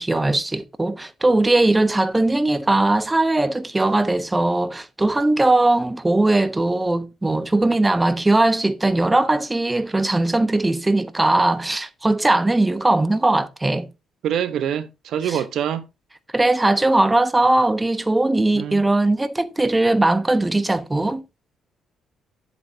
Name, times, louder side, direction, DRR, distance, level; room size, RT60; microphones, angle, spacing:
voice 1, 0.0-13.9 15.3-15.4 16.3-21.2, right 2 dB, 15° right, 1.0 m, -19 dB
voice 2, 14.2-15.8 18.5-18.8, right 9 dB, 75° right, 1.0 m, -25 dB
10.5 x 8.2 x 2.8 m
cardioid pair, 90°, 0 cm